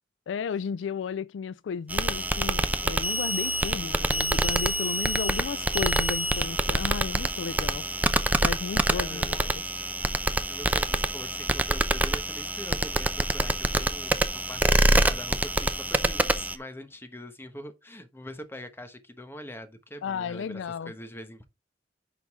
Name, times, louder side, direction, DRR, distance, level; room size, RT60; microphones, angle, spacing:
voice 1, 0.3-7.9 8.4-9.6 20.0-20.9, left 6 dB, 75° left, 0.3 m, -34 dB
sound 1, 1.9-16.6, right 1 dB, 10° right, 0.6 m, -26 dB
voice 2, 8.9-9.4 10.5-21.5, equal, 15° left, 1.1 m, -43 dB
11.0 x 3.9 x 3.6 m
head